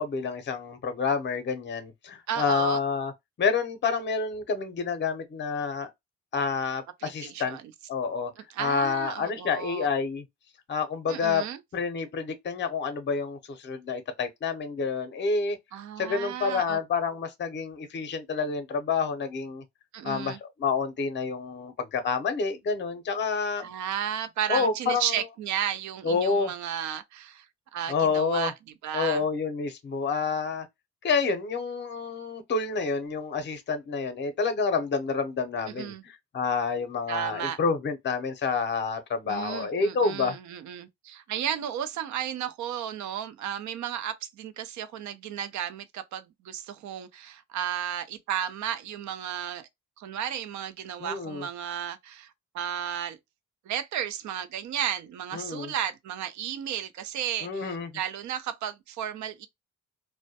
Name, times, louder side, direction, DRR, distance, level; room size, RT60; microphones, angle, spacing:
voice 1, 0.0-3.1 3.4-5.9 6.3-7.6 7.9-8.3 8.6-10.2 10.7-11.4 11.7-15.6 16.0-19.6 20.0-23.7 24.5-25.2 26.0-26.5 27.9-28.5 28.9-30.7 31.0-40.4 51.0-51.5 55.3-55.7 57.4-57.9, left 5 dB, 35° left, 0.6 m, -28 dB
voice 2, 2.3-2.8 7.0-7.7 8.5-9.9 11.1-11.6 15.7-16.8 19.9-20.4 23.6-27.5 27.7-28.5 28.8-29.2 35.7-36.0 37.1-37.6 39.3-49.7 50.0-53.2 53.7-59.5, right 10 dB, 70° right, 0.5 m, -33 dB
2.2 x 2.1 x 2.7 m
cardioid pair, 90°, 30 cm